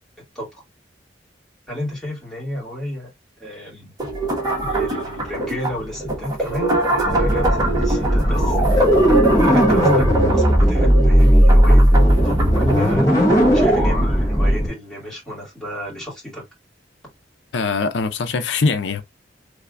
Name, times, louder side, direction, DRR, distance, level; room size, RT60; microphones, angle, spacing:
voice 1, 1.7-3.1 3.4-3.9 4.6-8.6 9.2-13.1 13.5-16.4, equal, 5° left, 2.3 m, -32 dB
sound 1, 4.0-13.6, right 2 dB, 20° right, 1.4 m, -23 dB
sound 2, 7.1-14.7, equal, 20° left, 1.4 m, -16 dB
voice 2, 17.5-19.0, left 4 dB, 85° left, 0.5 m, -22 dB
3.4 x 3.3 x 2.5 m
head